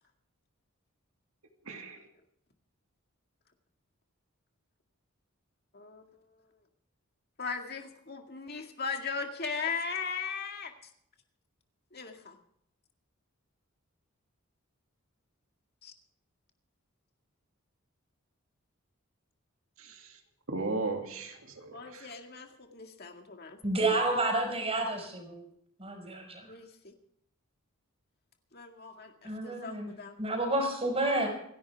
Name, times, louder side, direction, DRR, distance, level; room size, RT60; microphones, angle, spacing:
voice 1, 1.7-2.0 19.8-20.2 20.5-22.1, right 3 dB, 75° right, 3 dB, 2.5 m, -36 dB
voice 2, 5.7-6.1 7.4-10.7 11.9-12.4 15.8-15.9 21.7-23.9 26.4-26.9 28.5-30.2, left 5 dB, 45° left, 4 dB, 2.1 m, -38 dB
voice 3, 23.6-25.4 25.8-26.5 29.2-29.9 30.2-31.3, right 2 dB, 30° right, 4 dB, 5.3 m, -30 dB
27.5 x 11.5 x 3.5 m, 0.72 s
head